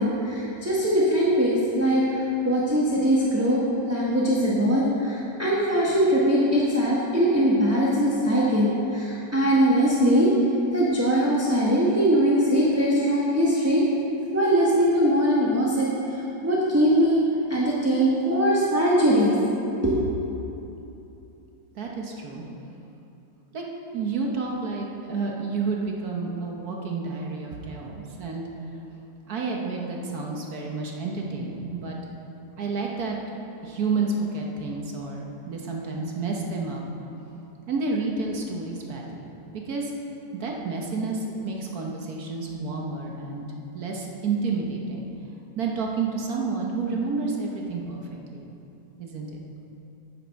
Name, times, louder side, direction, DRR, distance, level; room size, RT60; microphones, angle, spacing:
voice 1, 0.0-3.6 3.9-10.3 10.7-13.9 14.3-17.2 17.5-19.3 19.8-20.0, equal, 10° right, -7 dB, 0.9 m, -21 dB
voice 2, 21.7-22.4 23.5-23.6 23.9-28.4 29.3-32.0 32.6-33.2 33.6-36.8 37.7-39.9 40.3-43.5 43.7-45.1 45.6-48.5 49.0-49.4, right 4 dB, 60° right, -1 dB, 1.4 m, -30 dB
11.0 x 6.9 x 5.2 m, 2.9 s
omnidirectional pair, 1.9 m